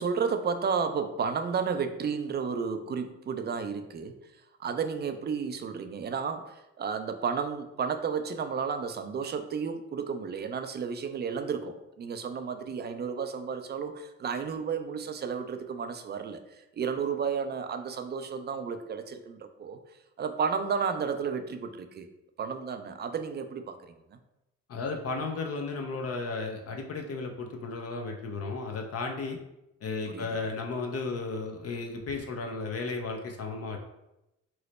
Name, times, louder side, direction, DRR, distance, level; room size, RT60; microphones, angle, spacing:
voice 1, 0.0-4.1 4.6-16.4 16.8-19.8 20.2-22.1 22.4-23.8 24.1-24.2 30.1-30.3, right 6 dB, 30° right, 8 dB, 0.4 m, -32 dB
voice 2, 24.7-29.4 29.8-33.8, left 3 dB, 45° left, 3 dB, 0.5 m, -34 dB
3.1 x 2.0 x 3.9 m, 0.92 s
supercardioid pair, 75°, 34 cm